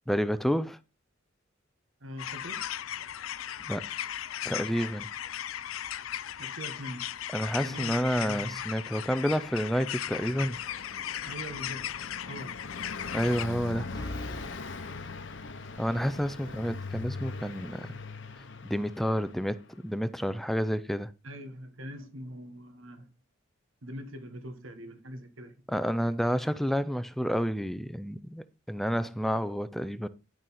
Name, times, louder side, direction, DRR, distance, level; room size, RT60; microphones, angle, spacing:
voice 1, 0.1-0.8 3.7-3.9 4.4-5.1 7.3-10.6 13.1-13.9 15.8-18.0 18.6-21.1 25.7-30.1, equal, ahead, 0.4 m, -29 dB
voice 2, 2.0-2.7 6.4-7.1 7.6-8.6 11.2-11.8 12.3-12.6 16.4-16.5 21.2-23.1 23.8-25.5, equal, 80° right, 1.5 m, -42 dB
sound 1, 2.2-13.4, left 11 dB, 90° left, 0.5 m, -37 dB
Car passing by, 8.6-19.6, left 3 dB, 65° left, 1.0 m, -41 dB
sound 2, 10.8-11.3 11.6-11.7 13.9-14.5, left 1 dB, 20° left, 1.3 m, -40 dB
10.5 x 6.4 x 4.2 m
head